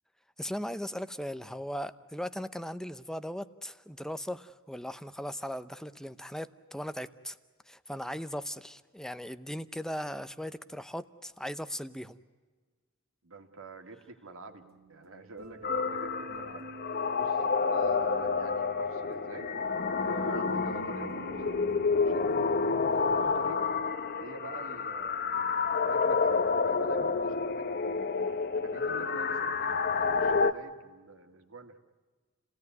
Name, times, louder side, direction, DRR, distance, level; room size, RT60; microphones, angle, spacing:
voice 1, 0.4-7.4 7.7-12.2, equal, 5° left, 13 dB, 0.7 m, -38 dB
voice 2, 13.2-19.5 20.0-21.7 22.0-22.3 23.1-23.7 24.2-28.0 28.6-31.8, right 3 dB, 70° right, 5 dB, 2.3 m, -47 dB
sound 1, 14.4-23.8, right 1 dB, 50° right, 2.1 m, -47 dB
sound 2, 15.6-30.5, left 4 dB, 45° left, 1.0 m, -29 dB
29.5 x 17.5 x 9.6 m, 1.4 s
head